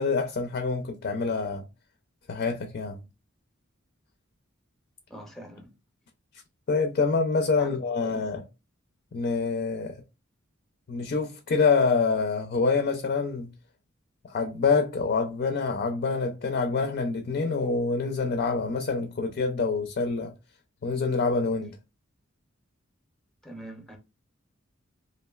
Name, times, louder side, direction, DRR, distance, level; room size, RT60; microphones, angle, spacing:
voice 1, 0.0-1.7 2.3-3.0 6.7-8.4 9.1-10.0 10.9-13.5 14.3-20.3 20.8-21.8, left 4 dB, 45° left, 0.4 m, -26 dB
voice 2, 5.1-5.7 7.6-8.3 23.4-24.0, right 1 dB, ahead, 0.6 m, -44 dB
3.0 x 2.4 x 2.3 m
head